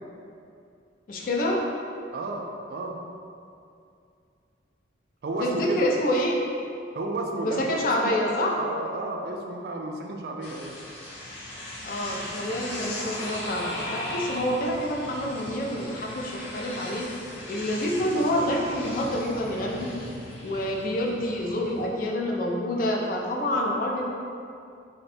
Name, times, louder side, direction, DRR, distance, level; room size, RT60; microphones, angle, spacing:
voice 1, 1.1-1.6 5.4-6.4 7.4-8.6 11.8-17.1 17.5-19.9 20.4-24.1, left 1 dB, 45° left, -1 dB, 0.3 m, -27 dB
voice 2, 2.1-3.0 5.2-5.9 6.9-7.7 8.0-8.2 8.6-10.7, right 2 dB, 55° right, 1 dB, 0.3 m, -32 dB
sound 1, 10.4-21.9, left 1 dB, 80° left, 0.8 m, -38 dB
2.6 x 2.2 x 4.0 m, 2.4 s
head